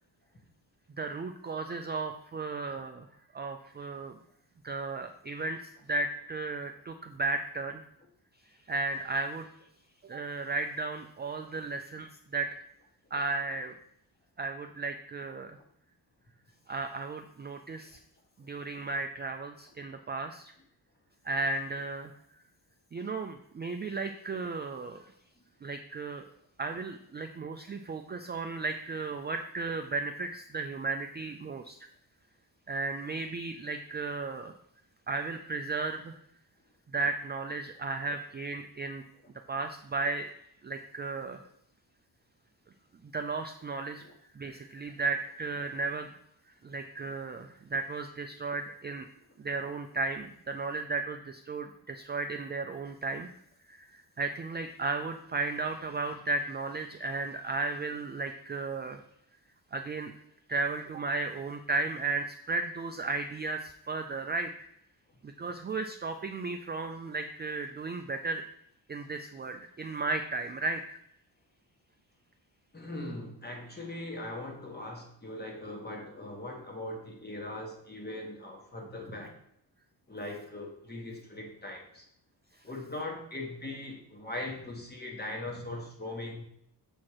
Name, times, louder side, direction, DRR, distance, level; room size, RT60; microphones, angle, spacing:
voice 1, 1.0-3.1 3.3-4.2 4.6-7.8 8.7-9.5 10.0-12.5 13.1-13.7 14.4-15.6 16.7-18.0 18.4-20.5 21.2-22.1 22.9-25.1 25.6-26.2 26.6-31.8 32.7-34.5 35.1-36.2 36.9-39.0 39.5-40.3 40.6-41.4 43.1-44.0 44.4-46.1 46.6-49.1 49.4-53.3 53.7-59.0 59.7-60.1 60.5-64.5 65.2-68.4 68.9-71.0, right 3 dB, 25° right, 6 dB, 0.3 m, -34 dB
voice 2, 72.7-79.3 80.1-82.1 82.6-86.4, left 1 dB, 25° left, 1 dB, 1.4 m, -40 dB
7.2 x 4.4 x 4.7 m, 0.70 s
wide cardioid pair, 140°, 42 cm